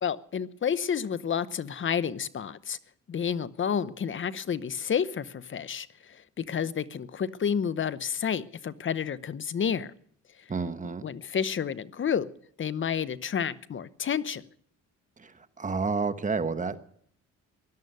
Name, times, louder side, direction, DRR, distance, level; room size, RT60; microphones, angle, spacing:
voice 1, 0.0-2.8 3.1-9.9 11.0-12.3 12.6-14.4, left 7 dB, 40° left, 16 dB, 0.8 m, -30 dB
voice 2, 10.5-11.0 15.2-15.3 15.6-16.8, right 4 dB, 25° right, 10 dB, 1.2 m, -29 dB
17.5 x 11.5 x 6.7 m, 0.63 s
cardioid pair, 90°, 30 cm